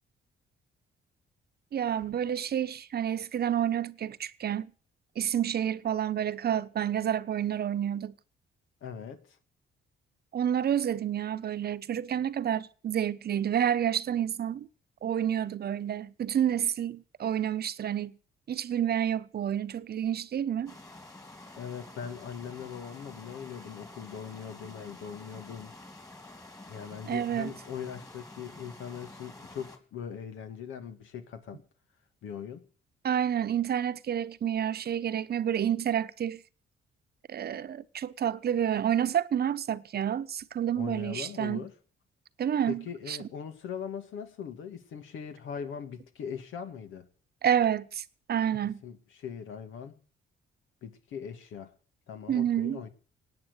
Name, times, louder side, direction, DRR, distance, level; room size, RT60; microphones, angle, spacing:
voice 1, 1.7-4.7 5.2-8.1 10.3-14.7 15.0-18.2 18.5-20.7 27.1-27.5 33.0-36.4 37.3-41.6 42.4-43.3 47.4-48.8 52.3-52.8, right 9 dB, 50° right, 0.9 m, -29 dB
voice 2, 8.8-9.4 21.6-25.8 26.7-31.6 32.2-32.6 40.8-41.7 42.7-47.1 48.8-50.0 50.8-51.7 52.1-52.9, left 7 dB, 80° left, 1.9 m, -40 dB
sound 1, 20.7-29.8, left 2 dB, 15° left, 3.2 m, -49 dB
17.5 x 9.0 x 8.0 m
cardioid pair, 90°, 20 cm